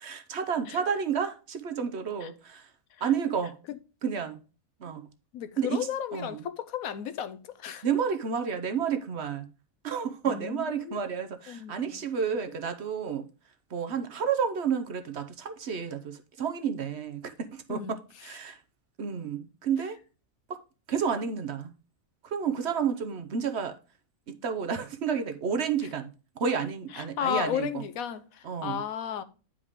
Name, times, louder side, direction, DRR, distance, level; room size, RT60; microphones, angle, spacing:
voice 1, 0.0-2.7 3.0-3.6 4.0-4.4 4.8-5.1 5.6-6.4 7.8-9.5 9.8-13.3 13.7-18.6 19.0-20.0 20.5-20.6 20.9-21.7 22.2-23.8 24.3-26.1 26.4-27.8 28.4-28.8, right 7 dB, 55° right, 1.0 m, -31 dB
voice 2, 5.3-7.8 10.3-11.1 11.5-12.0 17.7-18.0 26.9-29.2, left 9 dB, 90° left, 1.2 m, -34 dB
9.5 x 5.0 x 3.6 m
omnidirectional pair, 1.4 m